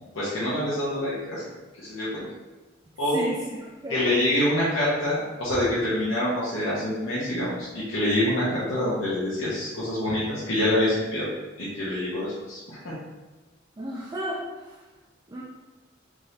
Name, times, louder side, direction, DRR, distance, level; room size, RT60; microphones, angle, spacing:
voice 1, 0.1-1.5 1.7-2.3 3.0-3.2 3.9-11.3 11.6-13.0, left 1 dB, 80° left, -9 dB, 0.9 m, -26 dB
voice 2, 13.8-14.8 15.3-15.4, equal, 20° right, -4 dB, 0.3 m, -32 dB
3.6 x 3.2 x 2.7 m, 1.2 s
head